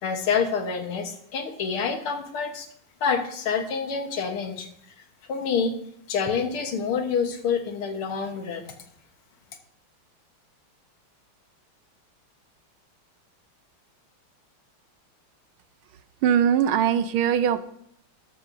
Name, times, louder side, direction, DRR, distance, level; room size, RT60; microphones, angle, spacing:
voice 1, 0.0-2.7 3.0-4.7 5.3-5.7 6.1-8.7, left 6 dB, 80° left, 5 dB, 2.1 m, -27 dB
voice 2, 16.2-17.7, right 9 dB, 80° right, 11 dB, 1.5 m, -21 dB
13.5 x 11.5 x 2.7 m, 0.70 s
omnidirectional pair, 2.4 m